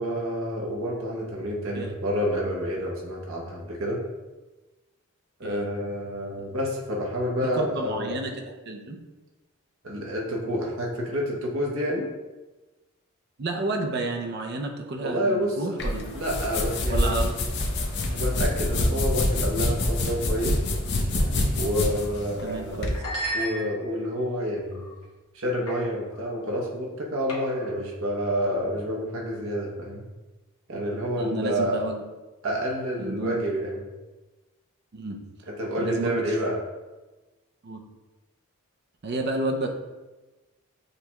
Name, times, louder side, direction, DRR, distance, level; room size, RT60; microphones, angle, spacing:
voice 1, 0.0-4.0 5.4-8.2 9.8-12.1 15.0-15.8 16.1-17.1 18.1-20.6 21.5-22.8 23.3-24.9 25.3-30.0 30.7-31.8 32.4-33.8 35.6-36.6, equal, 70° right, -2 dB, 0.9 m, -28 dB
voice 2, 7.4-9.0 13.4-16.0 16.9-17.4 22.4-23.0 31.2-32.0 33.0-33.4 34.9-35.2 35.8-36.4 37.6-37.9 39.0-39.7, right 2 dB, 45° right, 3 dB, 0.5 m, -31 dB
sound 1, 15.8-23.0, left 1 dB, 50° left, 0.5 m, -26 dB
sound 2, 22.0-22.2 22.9-24.1 24.7-25.0 25.7-25.8 26.1-26.3 27.3-27.7, right 1 dB, 90° left, 1.0 m, -34 dB
6.5 x 2.2 x 2.9 m, 1.2 s
head